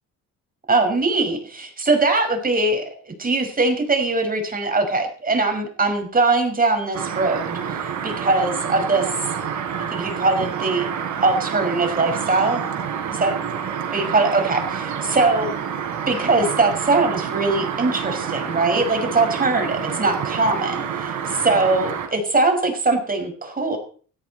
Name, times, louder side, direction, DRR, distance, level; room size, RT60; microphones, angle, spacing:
voice 1, 0.7-7.8 8.0-9.1 9.9-10.9 11.2-12.6 13.1-13.3 13.9-15.5 16.1-23.8, right 3 dB, 30° right, 5 dB, 5.6 m, -21 dB
sound 1, 6.9-22.1, right 7 dB, 75° right, 4.1 m, -28 dB
17.5 x 14.5 x 4.3 m, 0.42 s
cardioid pair, 90°, 30 cm